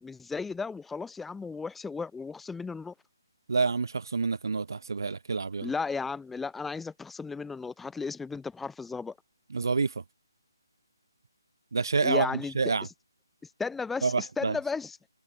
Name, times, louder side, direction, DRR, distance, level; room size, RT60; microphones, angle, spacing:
voice 1, 0.0-2.9 5.6-9.1 12.0-12.5 13.6-15.0, left 4 dB, 5° left, 1.6 m, -34 dB
voice 2, 3.5-5.7 9.5-10.0 11.7-12.3 12.6-12.9 14.0-14.6, right 4 dB, 65° right, 2.2 m, -28 dB
figure-of-eight pair, 150°, 2 cm